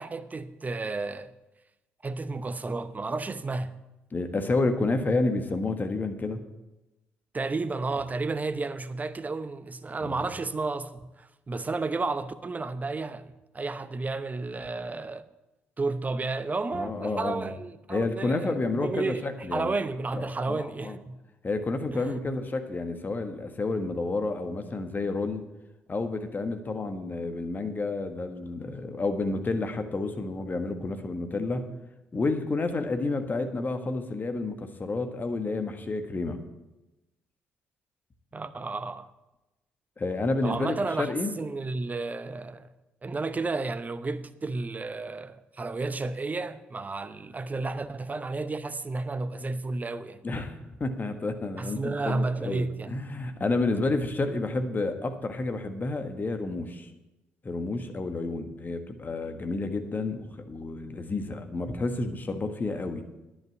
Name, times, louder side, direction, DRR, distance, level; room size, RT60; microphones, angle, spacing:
voice 1, 0.0-1.3 2.0-3.8 7.3-15.3 15.8-21.2 21.9-22.1 38.3-39.1 40.4-42.7 43.0-50.2 51.6-52.9, right 3 dB, 30° right, 0.8 m, -32 dB
voice 2, 4.1-6.4 10.0-10.2 16.7-17.5 17.9-19.7 20.1-21.0 21.4-25.4 25.9-31.7 32.1-36.4 40.0-41.3 50.2-50.5 50.8-56.9 57.4-63.0, left 3 dB, 35° left, 1.5 m, -30 dB
10.5 x 6.2 x 8.6 m
hypercardioid pair, 45°, 6 cm